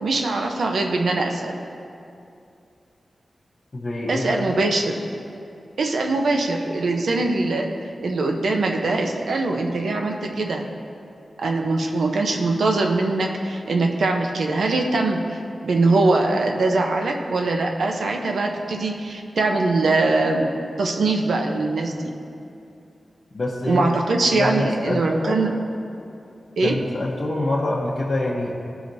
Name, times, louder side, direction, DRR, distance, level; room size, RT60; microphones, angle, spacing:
voice 1, 0.0-1.5 4.1-4.9 5.8-7.7 8.0-10.7 11.4-20.5 20.8-22.1 23.7-25.5 26.6-26.8, right 2 dB, 90° right, 2 dB, 0.7 m, -22 dB
voice 2, 3.7-4.4 23.3-23.9 24.3-25.4 26.6-28.6, left 2 dB, 40° left, -7 dB, 0.9 m, -26 dB
14.0 x 4.9 x 2.7 m, 2.7 s
wide cardioid pair, 130°, 0 cm